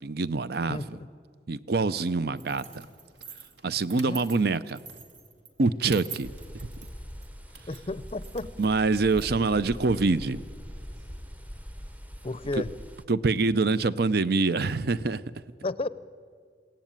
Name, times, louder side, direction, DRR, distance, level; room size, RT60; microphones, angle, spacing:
voice 1, 0.0-0.8 1.5-2.9 3.6-4.8 5.6-6.7 8.6-10.4 13.1-15.2, right 3 dB, 60° right, 16 dB, 0.6 m, -25 dB
voice 2, 0.7-1.1 4.1-4.2 7.7-8.5 12.2-12.7 15.6-15.9, left 2 dB, 30° left, 16 dB, 0.6 m, -32 dB
sound 1, 2.4-11.2, right 5 dB, 80° right, 2.1 m, -48 dB
sound 2, 6.2-13.1, equal, 10° right, 0.8 m, -42 dB
22.5 x 17.0 x 9.0 m, 2.1 s
head